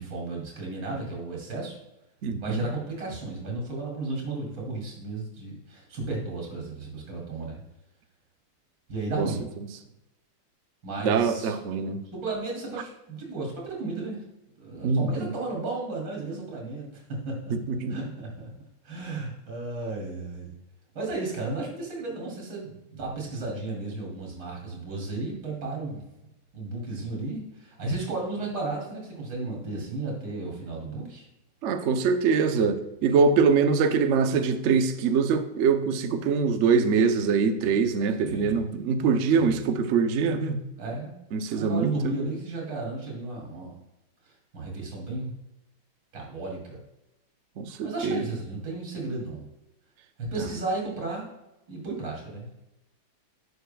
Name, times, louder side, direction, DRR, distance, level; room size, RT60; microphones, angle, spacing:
voice 1, 0.0-1.8 2.4-7.6 8.9-9.4 10.8-11.6 12.1-14.2 14.6-17.5 17.9-18.5 18.8-20.5 20.9-26.0 26.5-31.3 38.2-38.7 39.4-39.6 40.8-41.1 41.5-43.7 44.5-45.3 46.1-46.8 47.8-49.4 50.2-51.3 51.7-52.5, right 3 dB, 65° right, -1 dB, 3.5 m, -34 dB
voice 2, 2.2-2.7 9.2-9.3 11.0-12.0 14.8-15.3 17.5-18.0 31.6-40.6 41.3-42.2 47.6-48.2 50.3-50.4, right 5 dB, 85° right, 7 dB, 0.6 m, -24 dB
11.5 x 6.8 x 2.3 m, 0.92 s
omnidirectional pair, 2.1 m